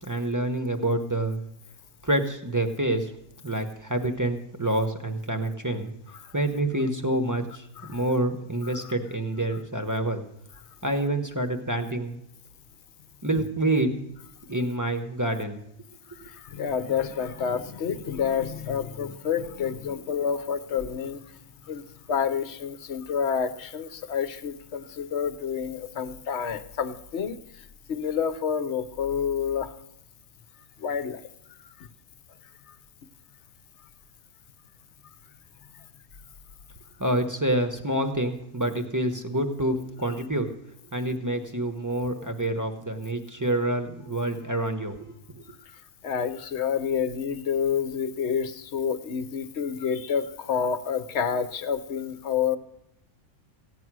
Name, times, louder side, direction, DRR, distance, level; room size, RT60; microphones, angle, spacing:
voice 1, 0.0-1.4 2.0-3.1 3.4-5.9 6.3-10.2 10.8-12.2 13.2-14.0 14.5-15.6 37.0-40.5 40.9-45.0, right 1 dB, 15° right, 6 dB, 1.0 m, -27 dB
voice 2, 16.2-21.2 21.6-21.8 22.1-29.7 30.8-31.2 31.5-31.9 32.7-32.8 35.7-35.8 45.6-52.6, left 7 dB, 60° left, 13 dB, 1.1 m, -29 dB
15.0 x 9.4 x 6.1 m, 0.80 s
omnidirectional pair, 1.4 m